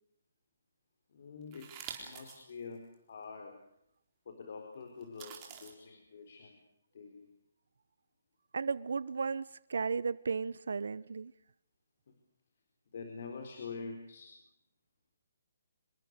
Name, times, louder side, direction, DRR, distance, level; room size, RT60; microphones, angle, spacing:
voice 1, 1.1-3.6 4.3-6.6 6.9-7.3 12.9-14.4, left 4 dB, 50° left, 4 dB, 4.2 m, -46 dB
sound 1, 1.5-2.4 2.9-3.0 5.0-5.7, right 7 dB, 20° right, 4.1 m, -46 dB
voice 2, 8.5-9.4 9.7-11.3, right 5 dB, 75° right, 18 dB, 0.8 m, -34 dB
27.0 x 22.0 x 6.7 m, 0.75 s
hypercardioid pair, 170°, 0 cm